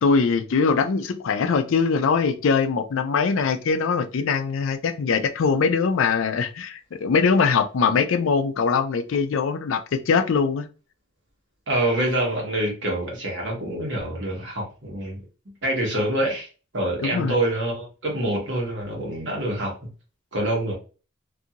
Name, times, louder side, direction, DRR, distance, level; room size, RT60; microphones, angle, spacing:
voice 1, 0.0-10.7 17.0-17.3, left 5 dB, 70° left, 0.4 m, -22 dB
voice 2, 11.7-15.2 15.6-16.5 16.7-19.7 20.3-20.7, right 1 dB, 60° right, 1.2 m, -26 dB
2.6 x 2.5 x 2.8 m
head